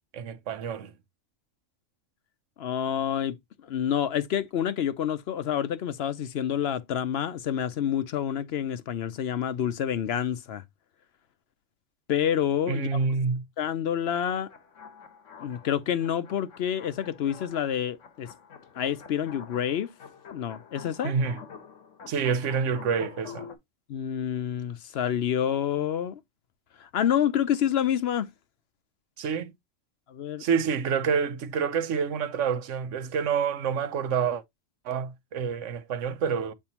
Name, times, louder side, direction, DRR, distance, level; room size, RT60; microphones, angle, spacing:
voice 1, 0.1-0.9 12.7-13.4 21.0-21.4 22.1-23.5 29.2-29.5 30.4-34.4 34.8-36.5, right 6 dB, 80° right, 1.1 m, -27 dB
voice 2, 2.6-3.4 3.6-10.6 12.1-12.9 13.6-14.5 15.4-18.3 18.8-19.9 20.3-21.1 23.9-26.2 26.8-28.3 30.1-30.4, left 9 dB, 65° left, 0.8 m, -28 dB
sound 1, 14.2-23.6, left 6 dB, 85° left, 1.4 m, -47 dB
7.6 x 4.4 x 2.8 m
omnidirectional pair, 1.2 m